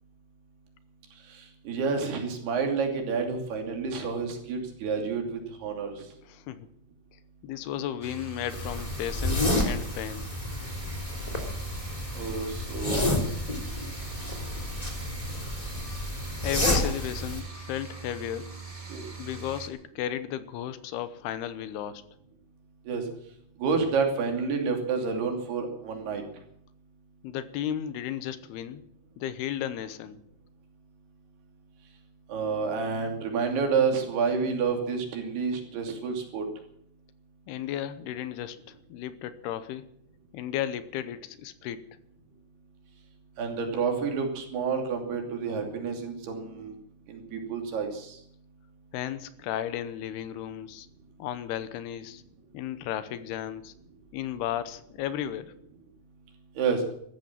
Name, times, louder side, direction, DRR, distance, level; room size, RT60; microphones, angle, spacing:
voice 1, 1.3-5.9 12.1-13.2 18.9-19.0 22.9-23.1 23.6-26.2 32.3-36.4 43.4-46.7 47.1-48.2 56.6-56.8, right 5 dB, 75° right, 3 dB, 4.8 m, -29 dB
voice 2, 6.2-6.7 7.4-10.3 16.4-18.5 19.2-22.0 27.2-28.8 29.2-30.2 37.5-39.8 40.3-41.8 48.9-50.9 51.2-52.2 52.5-53.7 54.1-55.5, left 11 dB, 80° left, 14 dB, 2.9 m, -34 dB
sound 1, 8.0-19.7, right 4 dB, 20° right, 1.0 m, -42 dB
sound 2, 8.5-17.4, left 1 dB, 10° left, 2.3 m, -30 dB
14.5 x 13.0 x 7.4 m, 0.70 s
omnidirectional pair, 4.6 m